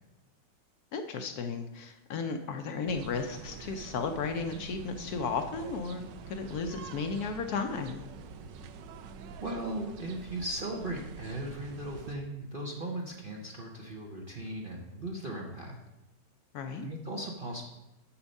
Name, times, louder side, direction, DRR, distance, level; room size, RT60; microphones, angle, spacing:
voice 1, 0.9-8.0 16.5-16.9, left 4 dB, 65° left, 6 dB, 1.0 m, -34 dB
sound 1, 2.9-12.2, right 5 dB, 80° right, 1.3 m, -46 dB
voice 2, 9.4-15.8 16.8-17.7, right 1 dB, 40° right, 0 dB, 0.8 m, -37 dB
7.0 x 6.7 x 5.3 m, 0.97 s
omnidirectional pair, 1.9 m